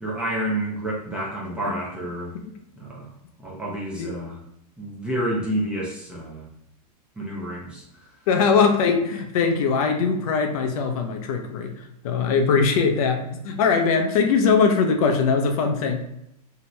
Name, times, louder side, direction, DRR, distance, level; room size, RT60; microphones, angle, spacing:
voice 1, 0.0-2.3 2.8-3.1 3.4-4.4 4.8-6.4 7.2-8.1, right 1 dB, 5° right, -5 dB, 0.4 m, -29 dB
voice 2, 8.3-11.7 12.0-16.0, left 5 dB, 60° left, 4 dB, 0.5 m, -21 dB
2.7 x 2.1 x 2.9 m, 0.80 s
supercardioid pair, 155°, 21 cm